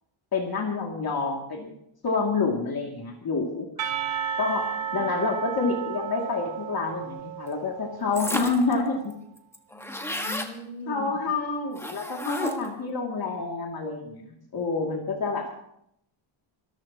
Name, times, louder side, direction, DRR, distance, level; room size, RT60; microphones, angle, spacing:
voice 1, 0.3-1.7 2.0-3.7 4.4-9.1 10.9-14.2 14.5-15.4, left 4 dB, 45° left, -1 dB, 2.7 m, -28 dB
Percussion, 3.8-8.6, right 9 dB, 70° right, 2.1 m, -33 dB
sound 1, 8.1-8.7 9.1-9.2 9.4-10.5 11.7-12.8, left 1 dB, 5° left, 1.5 m, -32 dB
voice 2, 9.7-11.2, left 1 dB, 20° left, 0 dB, 3.5 m, -40 dB
24.0 x 14.0 x 3.0 m, 0.76 s
cardioid pair, 120°, 50 cm